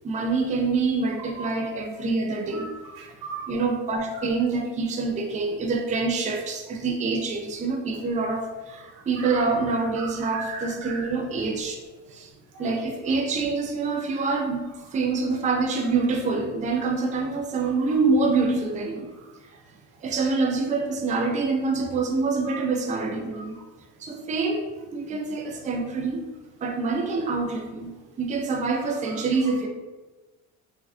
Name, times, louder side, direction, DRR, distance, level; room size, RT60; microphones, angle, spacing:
voice 1, 0.0-2.7 3.5-11.8 12.1-12.3 12.6-19.1 20.0-23.6 24.0-24.7 24.9-26.2 26.6-29.7, right 3 dB, 20° right, 2 dB, 0.4 m, -26 dB
voice 2, 2.9-3.5 4.2-4.3 9.2-9.4 10.0-11.1 12.6-12.7 22.5-22.6 23.3-23.4, right 4 dB, 90° right, 1 dB, 0.7 m, -37 dB
3.3 x 2.3 x 2.4 m, 1.2 s
supercardioid pair, 85°, 38 cm